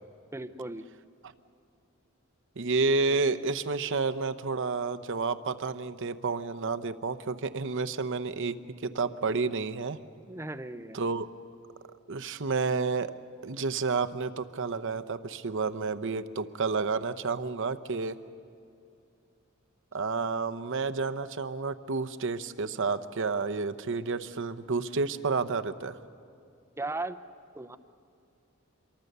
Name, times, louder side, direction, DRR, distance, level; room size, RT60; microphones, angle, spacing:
voice 1, 0.3-0.8 10.3-11.0 26.8-27.2 27.5-27.8, right 2 dB, 10° right, 10 dB, 0.7 m, -36 dB
voice 2, 2.6-10.0 10.9-11.3 12.1-13.1 13.4-18.2 19.9-26.0, right 4 dB, 60° right, 10 dB, 0.8 m, -30 dB
26.5 x 23.5 x 6.7 m, 2.5 s
head